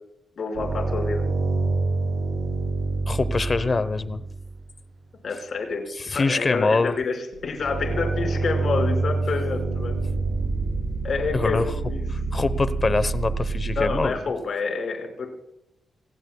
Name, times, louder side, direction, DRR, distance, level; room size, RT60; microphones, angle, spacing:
voice 1, 0.4-1.2 5.2-10.0 11.0-12.1 13.8-15.3, left 4 dB, 55° left, 3 dB, 5.4 m, -28 dB
sound 1, 0.5-4.6 7.3-14.1, right 3 dB, 85° right, 6.8 m, -27 dB
voice 2, 3.1-4.2 6.0-7.0 11.3-11.7 12.3-14.2, left 3 dB, 30° left, 14 dB, 0.9 m, -24 dB
27.5 x 18.0 x 2.3 m, 0.85 s
wide cardioid pair, 155°, 0 cm